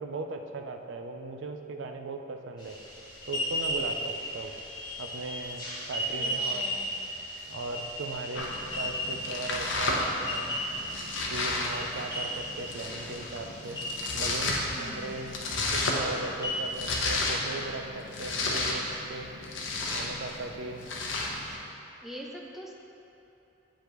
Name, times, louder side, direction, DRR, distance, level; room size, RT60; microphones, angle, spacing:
voice 1, 0.0-2.8 3.3-4.5 5.0-6.7 7.5-8.5 8.8-10.6 11.3-13.8 14.1-15.4 15.7-19.3 19.9-20.8, right 3 dB, 85° right, 5 dB, 0.5 m, -38 dB
sound 1, 2.6-17.3, equal, 20° left, 1.1 m, -36 dB
voice 2, 6.0-6.9 14.6-15.3 22.0-22.7, equal, ahead, -1 dB, 0.4 m, -44 dB
Domestic sounds home sounds, 8.3-21.6, left 2 dB, 85° left, 0.8 m, -33 dB
8.2 x 5.0 x 3.1 m, 2.8 s
head